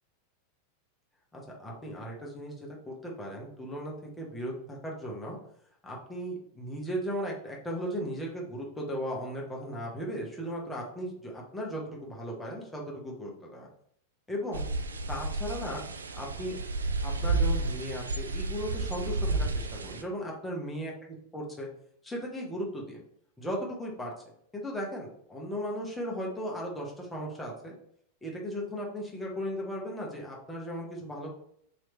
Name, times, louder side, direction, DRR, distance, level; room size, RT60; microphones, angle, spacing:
voice 1, 1.3-5.4 5.8-13.7 14.3-14.6 15.1-15.8 16.2-16.6 17.0-21.7 22.0-23.0 23.4-24.1 24.5-27.7 28.2-31.3, equal, 10° left, -3 dB, 1.0 m, -36 dB
sound 1, 14.5-20.0, right 3 dB, 75° right, 0.3 m, -31 dB
3.1 x 3.1 x 3.2 m, 0.67 s
figure-of-eight pair, 90°, 0 cm